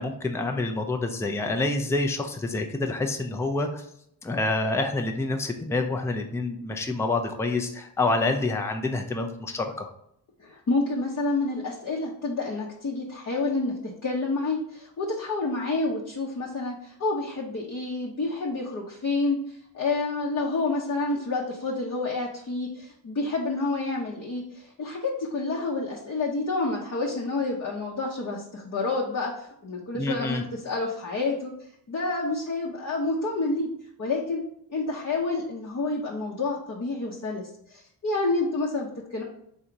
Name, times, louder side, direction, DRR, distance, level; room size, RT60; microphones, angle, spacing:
voice 1, 0.0-3.9 4.2-9.9 29.9-30.4, left 2 dB, 5° left, 4 dB, 0.4 m, -27 dB
voice 2, 10.4-31.5 31.9-33.7 34.0-34.4 34.7-39.2, left 3 dB, 40° left, -3 dB, 0.8 m, -29 dB
3.8 x 2.8 x 4.6 m, 0.70 s
cardioid pair, 95°, 44 cm